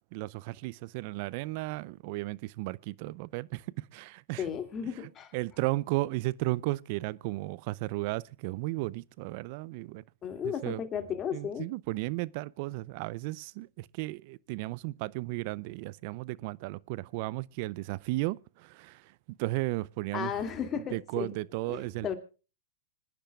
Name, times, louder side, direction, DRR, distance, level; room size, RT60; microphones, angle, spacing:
voice 1, 0.1-4.5 5.3-10.0 10.4-10.8 11.3-19.1 19.4-20.3 20.9-22.1, right 20 dB, 50° right, 0.5 m, -34 dB
voice 2, 4.4-5.3 10.2-11.6 20.1-21.3 21.7-22.1, left 8 dB, 25° left, 2.5 m, -34 dB
26.5 x 10.0 x 2.4 m
hypercardioid pair, 120°, 0 cm